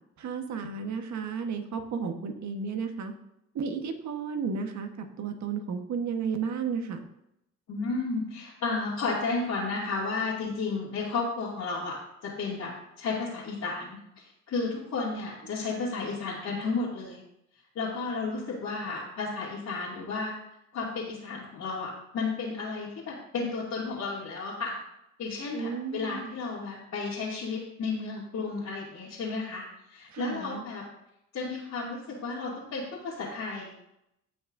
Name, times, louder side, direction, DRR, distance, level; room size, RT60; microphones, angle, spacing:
voice 1, 0.2-3.1 3.5-7.0 25.5-26.3 30.1-30.6, right 5 dB, 65° right, 5 dB, 1.4 m, -33 dB
voice 2, 7.7-12.0 12.2-12.7 13.0-17.2 17.7-20.3 20.7-24.8 25.2-29.6 29.9-30.8 31.3-33.8, left 4 dB, 65° left, -8 dB, 2.7 m, -33 dB
16.0 x 6.2 x 2.7 m, 0.82 s
cardioid pair, 90°, 30 cm